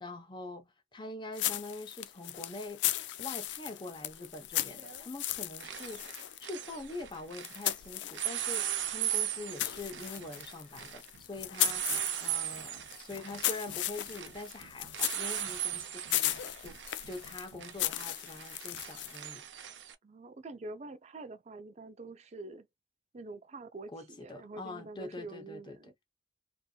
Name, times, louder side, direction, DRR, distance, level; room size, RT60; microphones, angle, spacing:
voice 1, 0.0-2.8 3.2-6.1 6.4-11.8 12.2-16.8 17.1-19.4 23.9-25.8, left 2 dB, 25° left, 0.7 m, -44 dB
sound 1, 1.3-8.7 9.1-19.3, left 13 dB, 75° left, 0.4 m, -37 dB
sound 2, 2.9-3.0 4.7-5.0 5.3-7.7 8.1-19.9, right 11 dB, 85° right, 0.6 m, -38 dB
voice 2, 20.0-22.7 23.1-25.9, right 2 dB, 40° right, 0.4 m, -46 dB
2.7 x 2.6 x 2.2 m
head